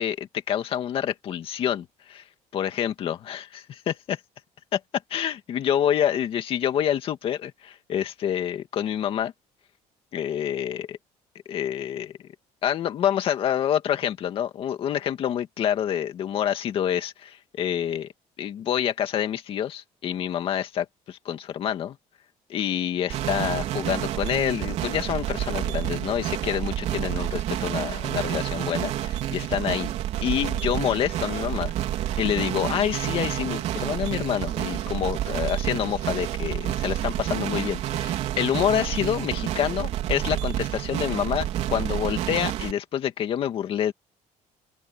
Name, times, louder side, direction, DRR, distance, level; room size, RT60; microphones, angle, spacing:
voice 1, 0.0-2.2 2.5-4.2 4.7-4.8 5.1-9.3 10.1-11.0 11.5-12.1 12.6-18.1 18.4-22.0 22.5-29.9 30.2-31.7 32.2-43.9, left 10 dB, 45° left, 2.2 m, -27 dB
sound 1, 23.1-42.7, right 12 dB, 55° right, 3.8 m, -29 dB
open air
cardioid pair, 175°, 13 cm